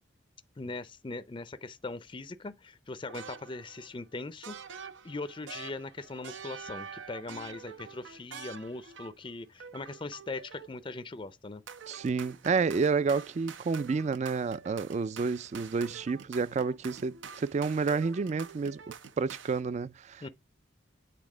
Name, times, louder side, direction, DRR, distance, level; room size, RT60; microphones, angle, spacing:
voice 1, 0.6-4.5 5.0-11.6 20.2-20.3, left 3 dB, 25° left, 0.5 m, -40 dB
sound 1, 3.1-3.9 4.4-9.3 9.6-10.9 11.7-19.6, right 6 dB, 80° right, 0.6 m, -46 dB
voice 2, 11.9-18.8 19.2-20.3, right 4 dB, 35° right, 0.3 m, -30 dB
8.5 x 3.4 x 4.9 m
head